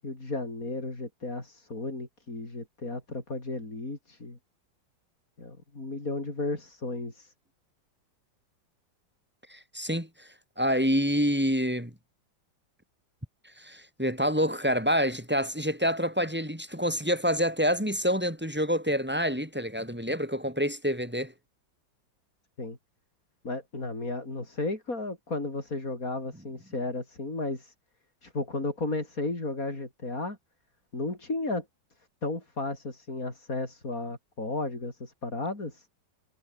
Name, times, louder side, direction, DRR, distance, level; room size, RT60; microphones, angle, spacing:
voice 1, 0.0-4.4 5.4-7.3 22.6-22.8 23.4-27.7 28.2-30.4 30.9-31.7 32.2-35.9, left 2 dB, 45° left, 5.7 m, -34 dB
voice 2, 9.5-10.3 10.6-11.9 13.6-21.3, equal, 5° right, 4.4 m, -27 dB
omnidirectional pair, 2.1 m